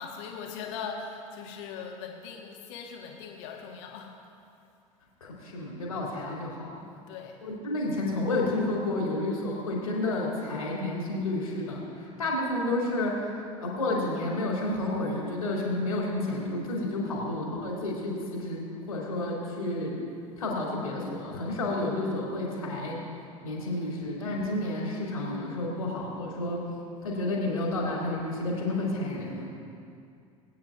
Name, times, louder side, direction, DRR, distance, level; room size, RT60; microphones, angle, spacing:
voice 1, 0.0-4.1 7.1-7.4, left 6 dB, 55° left, 1 dB, 1.6 m, -40 dB
voice 2, 5.2-6.9 7.4-13.3 13.6-19.9 20.4-23.0 23.4-26.6 27.0-29.5, left 2 dB, 75° left, -3 dB, 2.7 m, -30 dB
22.0 x 9.2 x 2.5 m, 2.5 s
figure-of-eight pair, 70°, 18 cm